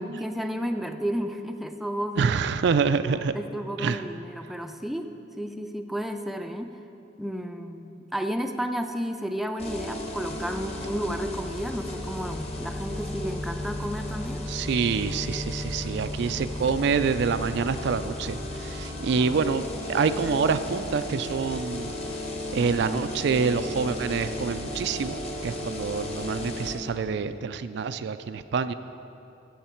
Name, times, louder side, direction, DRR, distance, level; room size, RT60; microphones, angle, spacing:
voice 1, 0.0-2.3 3.0-6.7 7.2-14.4 19.2-19.4, equal, ahead, 5 dB, 0.4 m, -32 dB
voice 2, 2.2-3.3 3.8-4.0 14.5-21.9 22.5-28.7, right 5 dB, 65° right, 11 dB, 0.4 m, -26 dB
sound 1, 9.6-26.7, left 1 dB, 35° left, 1.2 m, -34 dB
15.0 x 7.3 x 4.4 m, 2.7 s
head